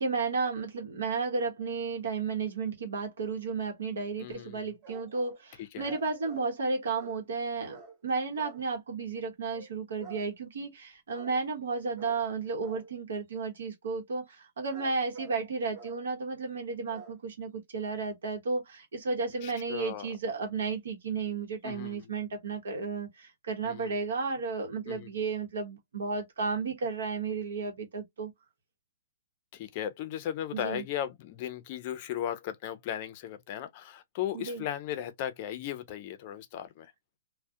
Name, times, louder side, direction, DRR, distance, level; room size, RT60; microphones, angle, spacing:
voice 1, 0.0-28.3 30.5-30.8 34.3-34.6, right 4 dB, 85° right, 0.9 m, -33 dB
voice 2, 4.2-4.7 5.6-5.9 19.4-20.1 21.6-22.1 23.6-23.9 24.9-25.1 29.5-36.9, left 10 dB, 35° left, 0.4 m, -36 dB
sound 1, 4.8-5.4 5.8-6.5 6.9-7.3 7.7-8.0 8.4-8.6 9.5-9.7 10.0-10.3 11.1-11.4 12.0-12.3 12.6-12.9 14.5-15.4 15.7-16.0 16.9-17.2, right 4 dB, 30° right, 0.8 m, -48 dB
2.3 x 2.0 x 2.6 m
hypercardioid pair, 160°, 0 cm